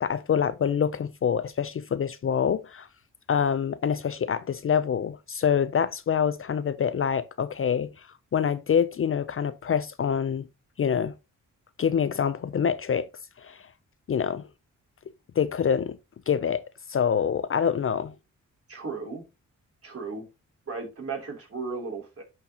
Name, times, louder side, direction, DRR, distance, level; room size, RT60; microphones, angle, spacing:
voice 1, 0.0-2.9 3.3-8.1 8.3-10.5 10.8-11.1 11.8-13.1 13.4-13.6 14.1-14.5 15.4-16.0 16.3-16.6 16.9-18.1, left 7 dB, 40° left, 0.5 m, -26 dB
voice 2, 18.7-19.2 19.8-20.3 20.7-22.2, right 4 dB, 45° right, 3.0 m, -35 dB
10.5 x 4.6 x 2.8 m
cardioid pair, 90°, 32 cm